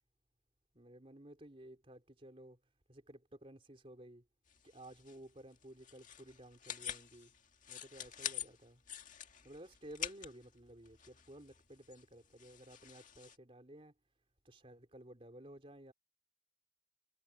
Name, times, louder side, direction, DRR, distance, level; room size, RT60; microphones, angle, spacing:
voice 1, 0.7-4.3 4.6-7.3 7.7-8.8 9.4-13.9 14.4-15.9, right 1 dB, 30° right, 3.4 m, -55 dB
sound 1, 4.5-13.4, left 9 dB, 45° left, 2.0 m, -48 dB
head